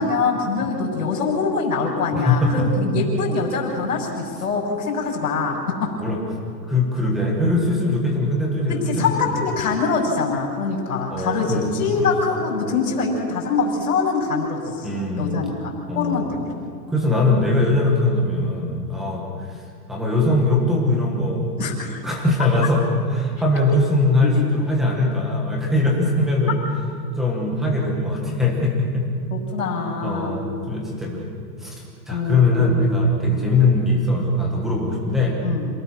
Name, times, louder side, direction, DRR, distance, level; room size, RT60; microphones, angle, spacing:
voice 1, 0.0-5.9 8.7-16.5 21.6-22.0 24.2-24.4 29.3-30.3 32.1-32.8 33.3-33.5 35.4-35.7, left 4 dB, 60° left, -4 dB, 6.5 m, -24 dB
voice 2, 2.1-2.7 6.0-6.2 6.7-9.1 11.1-12.1 14.8-15.4 15.9-16.3 16.9-19.6 19.9-21.5 22.0-22.8 23.1-26.6 27.2-29.1 30.0-31.3 31.6-35.4, left 2 dB, ahead, -1 dB, 1.2 m, -21 dB
28.0 x 18.5 x 6.4 m, 2.3 s
hypercardioid pair, 180°, 49 cm